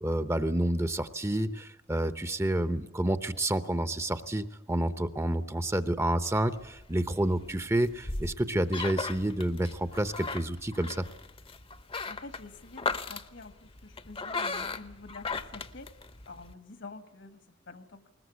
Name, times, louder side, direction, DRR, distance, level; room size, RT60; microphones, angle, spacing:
voice 1, 0.0-11.0, right 1 dB, 15° right, 12 dB, 0.8 m, -29 dB
sound 1, 6.3-16.5, left 4 dB, 30° left, 0.9 m, -38 dB
voice 2, 12.1-15.9 16.3-18.1, left 3 dB, 65° left, 10 dB, 1.7 m, -48 dB
21.0 x 20.0 x 8.1 m, 0.97 s
head